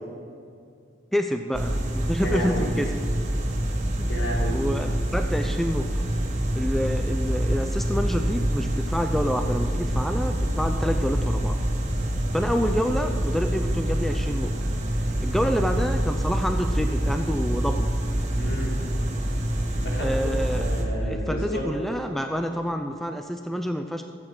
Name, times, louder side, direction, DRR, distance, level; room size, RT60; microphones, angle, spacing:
voice 1, 1.1-2.9 4.0-4.1 4.5-5.9 6.5-11.6 12.3-14.5 15.2-17.9 20.0-20.7 21.1-24.0, equal, ahead, 5 dB, 0.4 m, -28 dB
sound 1, 1.5-20.8, right 1 dB, 35° right, 1.6 m, -26 dB
voice 2, 2.2-2.7 4.1-4.6 15.4-15.6 18.3-18.7 19.8-21.6, equal, 75° left, -4 dB, 3.8 m, -32 dB
22.5 x 8.6 x 4.8 m, 2.4 s
head